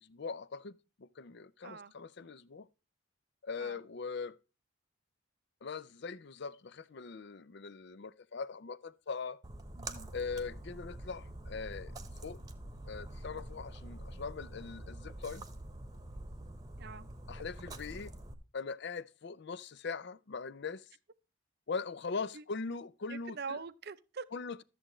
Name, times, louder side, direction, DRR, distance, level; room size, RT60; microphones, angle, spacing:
voice 1, 0.0-2.7 3.4-4.4 5.6-9.4 10.1-11.9 12.2-12.4 12.9-15.4 17.3-18.1 18.5-20.9 21.7-23.6 24.3-24.6, left 4 dB, 50° left, 0.5 m, -41 dB
voice 2, 1.6-1.9 3.6-3.8 9.8-10.1 16.8-17.1 22.3-22.4 23.1-24.2, right 5 dB, 50° right, 0.6 m, -44 dB
Splash splatter, 9.4-18.3, right 1 dB, 20° right, 1.0 m, -46 dB
13.0 x 7.5 x 3.1 m
head